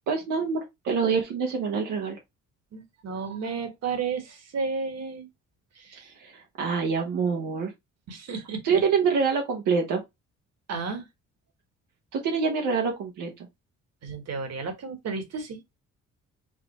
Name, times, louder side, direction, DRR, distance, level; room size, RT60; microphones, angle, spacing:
voice 1, 0.1-2.2 6.2-7.7 8.6-10.0 12.1-13.3, right 5 dB, 85° right, 1.2 m, -26 dB
voice 2, 2.7-5.3 5.8-6.1 8.1-8.8 10.7-11.1 14.0-15.6, right 5 dB, 60° right, 1.6 m, -33 dB
5.1 x 2.2 x 4.2 m
cardioid pair, 90°, 30 cm